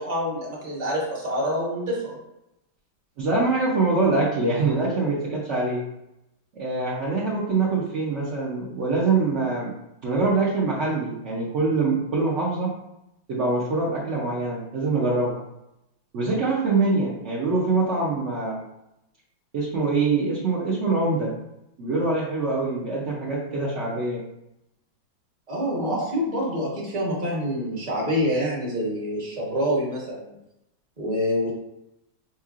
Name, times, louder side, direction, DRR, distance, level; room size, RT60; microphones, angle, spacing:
voice 1, 0.0-2.2 25.5-30.3 31.0-31.5, equal, 25° right, -4 dB, 1.0 m, -26 dB
voice 2, 3.2-5.8 6.5-9.7 10.0-12.7 13.3-15.4 16.1-18.6 19.5-21.3 21.8-24.2 25.7-26.0, right 3 dB, 65° right, -6 dB, 0.7 m, -24 dB
5.4 x 3.0 x 2.4 m, 0.87 s
omnidirectional pair, 2.1 m